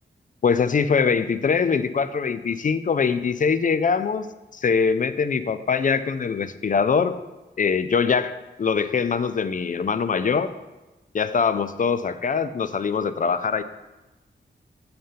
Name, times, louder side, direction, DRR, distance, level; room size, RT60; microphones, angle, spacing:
voice 1, 0.4-4.3 4.5-7.1 7.6-8.3 8.6-10.5 11.1-13.6, left 5 dB, 45° left, 12 dB, 0.4 m, -23 dB
7.9 x 5.0 x 5.7 m, 1.1 s
wide cardioid pair, 145°, 19 cm